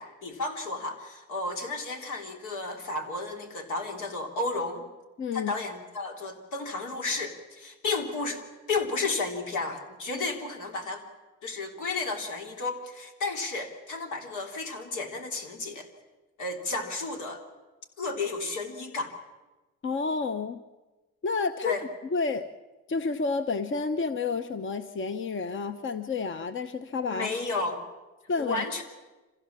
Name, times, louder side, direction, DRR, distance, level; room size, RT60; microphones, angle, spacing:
voice 1, 0.0-4.8 5.3-8.4 8.7-11.0 11.4-15.9 16.4-17.4 18.0-19.1 21.6-21.8 27.1-27.8 28.4-28.8, left 3 dB, 80° left, 3 dB, 3.4 m, -32 dB
voice 2, 5.2-5.5 19.8-20.6 21.2-21.8 22.1-22.4 22.9-27.3 28.3-28.6, left 4 dB, 40° left, 9 dB, 0.9 m, -30 dB
25.5 x 16.0 x 7.4 m, 1.2 s
cardioid pair, 90°, 30 cm